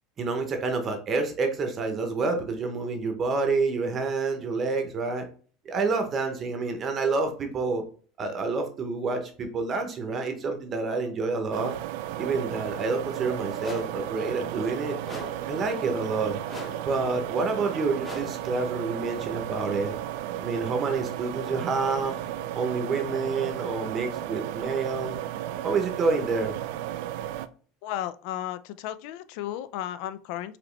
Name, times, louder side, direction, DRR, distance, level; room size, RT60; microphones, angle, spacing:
voice 1, 0.2-5.2 5.6-7.8 8.2-11.7 12.2-15.0 15.5-16.4 16.8-19.9 20.4-22.1 22.5-25.2 25.6-26.6, right 4 dB, 25° right, 0.8 m, -28 dB
sound 1, 11.5-27.5, right 12 dB, 70° right, 0.3 m, -34 dB
sound 2, 13.6-14.0 15.0-15.5 16.5-16.9 18.0-18.5, left 2 dB, 15° left, 0.8 m, -40 dB
voice 2, 27.8-30.6, left 12 dB, 60° left, 0.4 m, -34 dB
4.9 x 2.9 x 3.2 m
cardioid pair, 160°, 0 cm